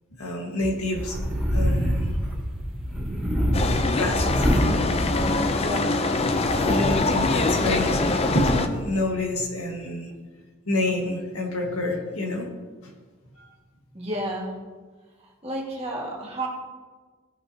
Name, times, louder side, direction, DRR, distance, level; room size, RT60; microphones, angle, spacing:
voice 1, 0.2-1.2 1.5-2.1 4.0-4.5 6.6-10.1 10.7-12.5 13.4-13.5, left 1 dB, 80° left, 1 dB, 1.5 m, -27 dB
sound 1, 0.9-5.7 6.1-8.5, equal, 5° right, 2.2 m, -26 dB
sound 2, 3.5-8.7, left 3 dB, 25° left, 0.4 m, -24 dB
voice 2, 5.5-5.9 13.9-14.5 15.4-16.5, right 1 dB, 25° right, -3 dB, 1.7 m, -31 dB
15.5 x 5.4 x 2.8 m, 1.4 s
head